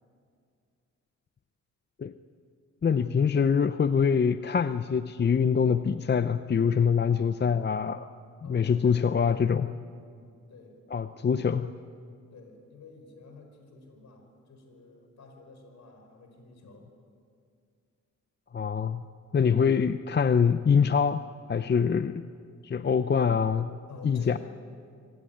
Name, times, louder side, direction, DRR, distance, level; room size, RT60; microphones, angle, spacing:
voice 1, 2.8-8.1 8.4-9.7 10.9-11.7 18.5-19.1 19.3-21.2 21.5-22.2 22.6-23.7 24.0-24.4, left 6 dB, 35° left, 11 dB, 0.6 m, -24 dB
voice 2, 8.4-9.5 10.5-11.1 12.3-16.9 23.9-24.4, left 3 dB, 70° left, 4 dB, 5.5 m, -50 dB
25.5 x 16.5 x 9.2 m, 2.3 s
cardioid pair, 100°, 30 cm